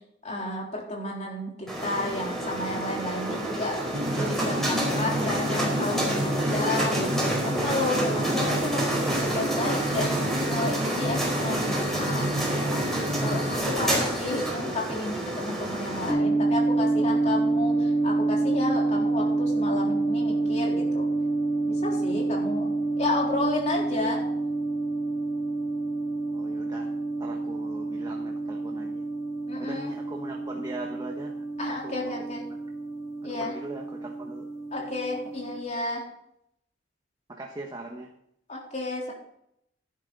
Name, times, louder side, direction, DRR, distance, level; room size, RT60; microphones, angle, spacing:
voice 1, 0.2-12.8 13.2-21.1 21.6-22.7 23.0-24.2 29.5-29.9 31.6-32.4 33.2-33.5 34.7-36.0 38.5-39.1, left 2 dB, 40° left, -1 dB, 3.8 m, -32 dB
sound 1, 1.7-16.1, right 1 dB, ahead, 4.7 m, -28 dB
sound 2, 3.9-13.6, right 1 dB, 80° right, 1.3 m, -32 dB
sound 3, 16.1-35.6, right 2 dB, 60° left, 4.1 m, -28 dB
voice 2, 26.3-26.9 27.2-29.0 29.6-32.3 33.3-34.5 34.8-34.9 37.3-38.1, right 2 dB, 20° right, 1 dB, 1.3 m, -41 dB
12.0 x 11.5 x 4.1 m, 0.75 s
head